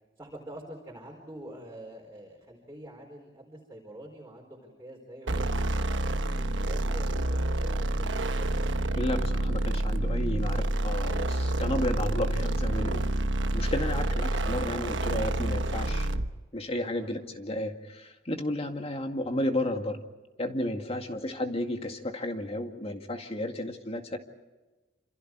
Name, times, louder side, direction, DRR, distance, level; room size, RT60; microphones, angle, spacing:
voice 1, 0.2-8.6 14.1-14.5 16.9-17.1 20.9-21.2, right 1 dB, 15° right, -2 dB, 4.5 m, -46 dB
sound 1, 5.3-16.3, right 1 dB, 80° right, 1.1 m, -28 dB
voice 2, 9.0-13.1 13.5-16.1 16.5-20.0 20.4-24.2, left 1 dB, 35° left, 5 dB, 2.2 m, -32 dB
27.5 x 27.5 x 4.8 m, 1.1 s
head